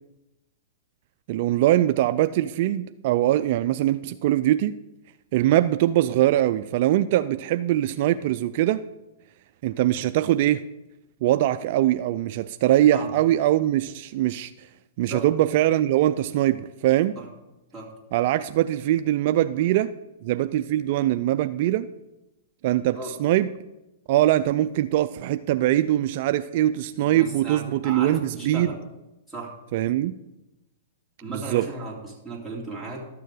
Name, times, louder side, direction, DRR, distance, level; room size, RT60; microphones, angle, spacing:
voice 1, 1.3-4.7 5.3-8.8 9.6-10.6 11.2-14.5 15.0-17.2 18.1-19.9 20.2-21.9 22.6-23.5 24.1-28.7 29.7-30.1 31.3-31.7, right 13 dB, 55° right, 12 dB, 0.3 m, -22 dB
voice 2, 26.9-28.8 29.3-29.5 31.2-33.1, right 3 dB, ahead, -2 dB, 2.6 m, -35 dB
12.5 x 6.7 x 4.9 m, 0.97 s
hypercardioid pair, 135°, 0 cm